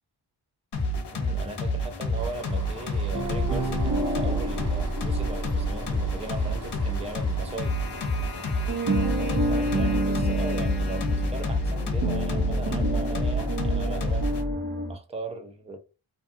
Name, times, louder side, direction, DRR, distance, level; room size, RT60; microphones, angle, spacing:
sound 1, 0.7-14.4, left 1 dB, 55° left, 0.8 m, -29 dB
voice 1, 1.1-7.7 9.1-14.4 14.9-15.8, right 3 dB, 15° right, 0.7 m, -38 dB
sound 2, 2.1-9.4, equal, 30° right, 1.3 m, -43 dB
sound 3, 3.1-8.4 8.7-15.0, right 1 dB, 45° right, 1.1 m, -29 dB
2.6 x 2.4 x 2.6 m
cardioid pair, 45°, 49 cm